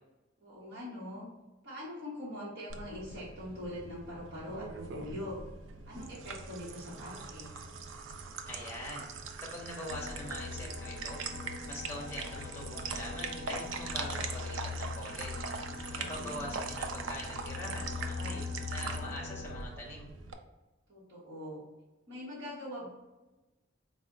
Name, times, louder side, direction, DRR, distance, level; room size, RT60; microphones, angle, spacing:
voice 1, 0.4-1.3 1.6-5.4 5.9-7.5 15.9-16.5 20.9-21.6 22.1-22.9, left 1 dB, 60° right, -9 dB, 1.1 m, -43 dB
sound 1, 2.7-20.3, right 4 dB, 90° right, 0.4 m, -42 dB
voice 2, 8.5-11.2 11.7-15.4 16.0-20.1, left 1 dB, 10° left, -3 dB, 0.7 m, -43 dB
sound 2, 9.9-19.6, left 4 dB, 80° left, 0.5 m, -41 dB
4.0 x 2.1 x 3.7 m, 1.1 s
head